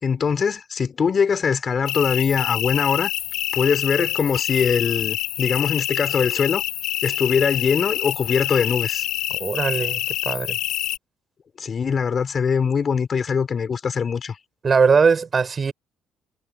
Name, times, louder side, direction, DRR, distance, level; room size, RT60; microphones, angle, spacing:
voice 1, 0.0-3.1 3.5-6.6 7.0-9.1 11.6-14.4, left 6 dB, 45° left, 4.9 m, -22 dB
sound 1, 1.9-11.0, left 15 dB, 75° left, 3.8 m, -26 dB
voice 2, 9.3-10.0 10.3-10.6 14.6-15.7, right 5 dB, 40° right, 5.2 m, -20 dB
supercardioid pair, 65°, 0 cm